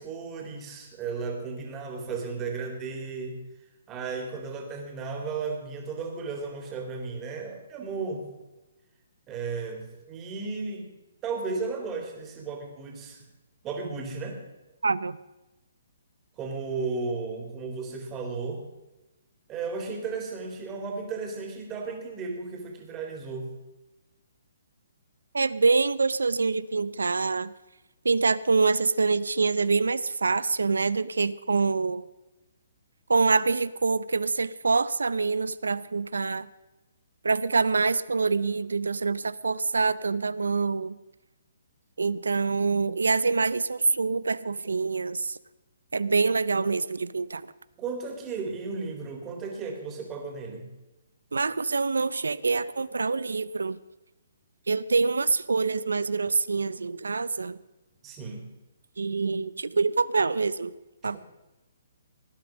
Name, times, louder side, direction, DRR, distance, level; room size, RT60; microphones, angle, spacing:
voice 1, 0.0-3.4 3.9-8.3 9.3-10.9 11.2-13.2 13.6-14.4 16.4-18.6 19.5-23.5 47.8-50.7 58.0-58.5, right 4 dB, 20° right, 2 dB, 3.4 m, -34 dB
voice 2, 14.8-15.2 25.3-27.5 28.0-32.1 33.1-36.5 37.2-41.0 42.0-45.4 45.9-47.4 51.3-53.8 54.7-57.6 59.0-60.7 61.0-61.2, right 4 dB, 90° right, 18 dB, 0.6 m, -25 dB
18.5 x 10.0 x 5.2 m, 1.0 s
hypercardioid pair, 145°, 0 cm